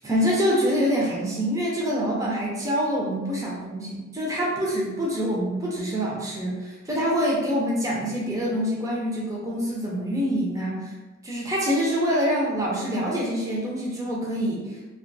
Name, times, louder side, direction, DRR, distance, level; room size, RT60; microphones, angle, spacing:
voice 1, 0.0-10.9 11.2-14.7, equal, 15° right, -4 dB, 0.5 m, -25 dB
2.3 x 2.2 x 2.6 m, 1.1 s
head